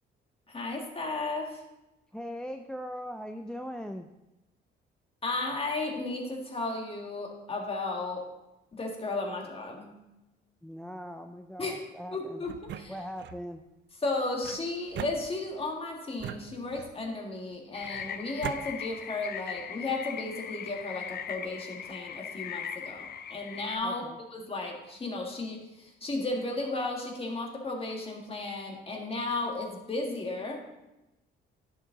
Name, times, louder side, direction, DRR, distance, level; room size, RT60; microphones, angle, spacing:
voice 1, 0.5-1.6 5.2-8.3 8.7-10.0 11.6-11.8 12.1-13.0 14.0-24.0 24.3-30.6, left 2 dB, 30° left, 0 dB, 2.0 m, -34 dB
voice 2, 2.1-4.1 10.6-12.4 12.9-13.6 23.8-24.2, equal, 5° left, 6 dB, 0.4 m, -40 dB
sound 1, 12.5-13.4 14.4-15.7 16.2-17.1 17.8-18.6, right 10 dB, 65° right, 0.5 m, -41 dB
sound 2, 17.7-23.8, left 8 dB, 50° left, 0.6 m, -40 dB
10.5 x 6.4 x 4.0 m, 0.98 s
cardioid pair, 90°, 20 cm